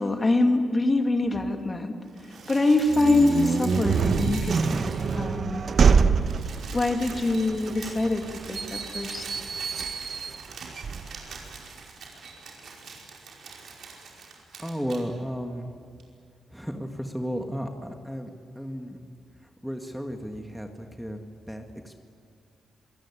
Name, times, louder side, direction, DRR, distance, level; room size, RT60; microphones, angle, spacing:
voice 1, 0.0-2.0 2.3-5.6 6.7-9.3, left 2 dB, 30° left, 5 dB, 2.5 m, -24 dB
sound 1, 2.1-5.4 5.7-5.8 6.0-15.0 16.0-16.1, right 4 dB, 70° right, 5.1 m, -43 dB
sound 2, 2.9-11.6, right 5 dB, 55° right, 1.2 m, -26 dB
voice 2, 14.6-15.7 16.5-18.3 18.6-19.0 19.6-21.2 21.5-22.0, equal, ahead, 4 dB, 2.0 m, -34 dB
26.5 x 17.5 x 9.9 m, 2.2 s
cardioid pair, 80°, 0 cm